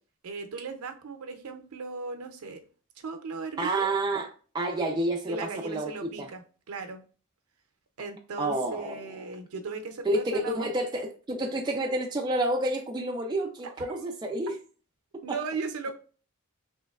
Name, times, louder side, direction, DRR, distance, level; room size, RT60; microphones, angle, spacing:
voice 1, 0.2-2.6 3.0-3.9 5.3-7.0 8.0-10.7 13.6-14.0 15.2-15.9, right 4 dB, 90° right, 6 dB, 0.5 m, -37 dB
voice 2, 3.6-6.3 8.4-9.1 10.1-14.6 15.3-15.4, right 1 dB, 20° right, 1 dB, 0.3 m, -29 dB
3.1 x 2.8 x 2.3 m, 0.39 s
head